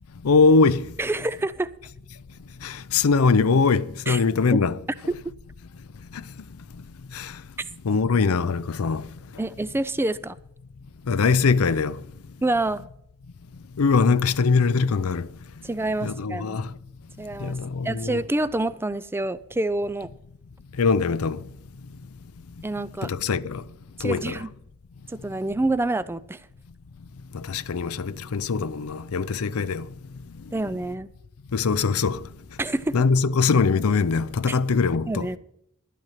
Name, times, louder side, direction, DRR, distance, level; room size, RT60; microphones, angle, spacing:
voice 1, 0.2-0.8 2.6-4.8 7.2-7.3 7.9-9.0 11.1-12.0 13.8-15.3 16.0-16.7 17.4-18.2 20.8-21.4 23.0-23.6 24.0-24.4 27.5-29.8 31.5-32.2 32.9-35.3, left 4 dB, 80° left, 0.5 m, -22 dB
voice 2, 1.0-1.7 4.1-4.2 4.5-4.6 9.4-10.4 12.4-12.8 15.6-16.6 17.2-17.6 17.8-20.1 22.6-23.1 24.0-24.5 25.1-26.5 30.5-31.1 32.6-33.0 34.5-34.6 35.1-35.4, right 2 dB, 10° right, 0.4 m, -27 dB
12.0 x 9.2 x 5.7 m
head